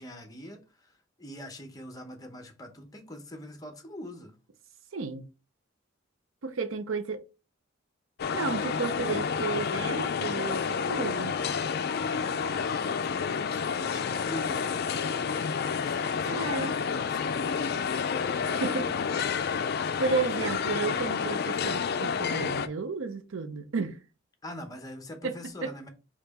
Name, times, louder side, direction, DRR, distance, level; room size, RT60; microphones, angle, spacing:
voice 1, 0.0-4.4 12.5-17.9 20.0-20.5 24.4-25.9, left 1 dB, 20° left, 0.8 m, -44 dB
voice 2, 4.9-5.2 6.4-7.2 8.3-11.4 16.3-16.8 18.6-18.9 20.0-24.0 25.2-25.7, right 4 dB, 80° right, 0.6 m, -32 dB
sound 1, 8.2-22.7, left 6 dB, 50° left, 0.4 m, -29 dB
4.4 x 2.9 x 4.1 m
head